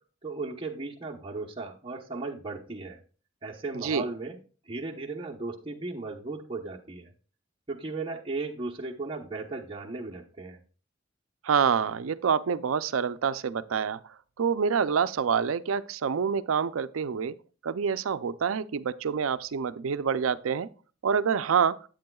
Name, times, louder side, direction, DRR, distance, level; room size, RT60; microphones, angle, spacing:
voice 1, 0.2-3.0 3.4-4.4 4.7-7.1 7.7-10.6, right 3 dB, 25° right, 1.0 m, -36 dB
voice 2, 3.7-4.0 11.4-17.4 17.6-20.7 21.0-21.8, right 6 dB, 85° right, 0.5 m, -27 dB
10.5 x 8.8 x 2.3 m
head